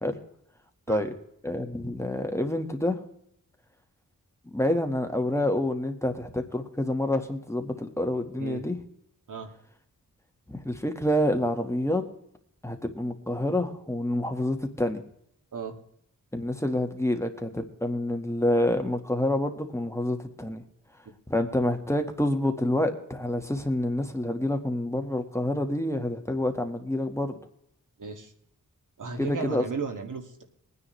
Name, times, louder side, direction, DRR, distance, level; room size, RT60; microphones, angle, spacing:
voice 1, 1.4-3.0 4.5-8.8 10.5-12.0 12.6-15.0 16.3-20.6 21.3-27.4 29.2-29.6, left 1 dB, 10° left, 5 dB, 1.6 m, -27 dB
voice 2, 28.0-28.3 29.0-30.4, right 5 dB, 65° right, 5 dB, 2.2 m, -35 dB
21.5 x 9.8 x 3.2 m, 0.73 s
wide cardioid pair, 85°, 33 cm